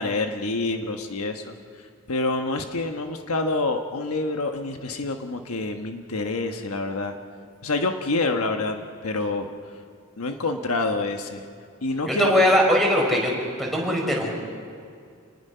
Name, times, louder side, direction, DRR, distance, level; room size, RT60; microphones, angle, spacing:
voice 1, 0.0-1.5 2.1-7.1 7.6-9.5 10.2-11.4 11.8-12.4, left 2 dB, 75° left, 5 dB, 1.3 m, -27 dB
voice 2, 12.1-13.3 13.6-14.3, equal, ahead, -1 dB, 4.8 m, -20 dB
29.0 x 19.5 x 5.7 m, 2.3 s
head